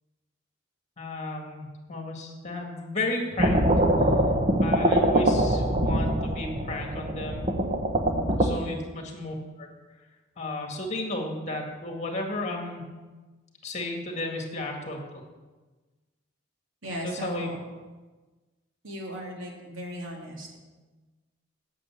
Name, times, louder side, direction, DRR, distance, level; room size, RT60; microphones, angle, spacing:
voice 1, 1.0-3.6 4.6-7.5 8.4-9.7 10.4-12.8 13.6-15.2 17.0-17.5, left 2 dB, 35° left, 2 dB, 2.0 m, -33 dB
sound 1, 3.4-8.5, right 1 dB, 30° right, 1.0 m, -23 dB
voice 2, 8.4-8.8 16.8-17.6 18.8-20.6, equal, 85° right, -1 dB, 2.7 m, -37 dB
8.4 x 7.5 x 8.6 m, 1.3 s
head